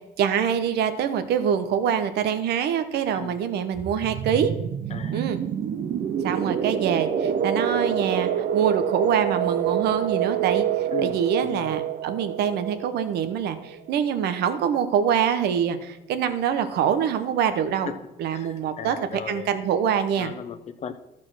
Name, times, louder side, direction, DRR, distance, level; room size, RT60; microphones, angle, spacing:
voice 1, 0.2-4.5 5.1-5.4 6.2-17.9 18.2-19.0 19.3-20.3, right 8 dB, 75° right, 10 dB, 0.9 m, -25 dB
sound 1, 3.8-14.3, right 9 dB, 50° right, 0.6 m, -27 dB
voice 2, 4.9-5.2 10.9-11.8 17.8-17.9 18.3-19.5 20.2-20.9, left 7 dB, 40° left, 9 dB, 0.9 m, -37 dB
13.0 x 4.4 x 6.1 m, 0.98 s
cardioid pair, 110°, 17 cm